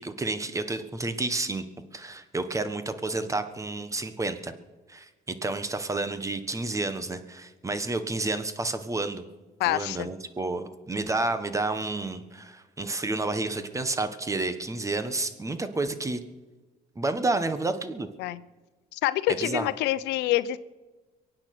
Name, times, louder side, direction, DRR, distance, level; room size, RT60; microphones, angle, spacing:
voice 1, 0.0-1.6 1.9-4.5 4.9-9.2 9.7-16.2 16.9-18.1 19.4-19.7, right 2 dB, 20° right, 11 dB, 1.4 m, -30 dB
voice 2, 9.6-10.1 18.2-18.4 18.9-20.6, left 14 dB, 90° left, 15 dB, 0.7 m, -26 dB
23.0 x 9.1 x 6.1 m, 1.2 s
cardioid pair, 110°, 17 cm